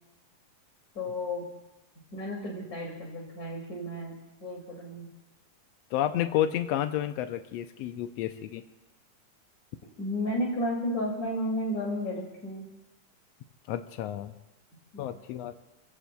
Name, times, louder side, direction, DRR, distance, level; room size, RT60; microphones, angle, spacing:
voice 1, 0.9-1.4 2.1-4.1 4.4-5.1 10.0-12.6 14.9-15.1, left 1 dB, 30° left, -5 dB, 2.6 m, -32 dB
voice 2, 5.9-8.6 13.7-14.3 15.0-15.6, left 11 dB, 90° left, 8 dB, 1.4 m, -30 dB
27.0 x 16.0 x 2.3 m, 0.96 s
omnidirectional pair, 3.6 m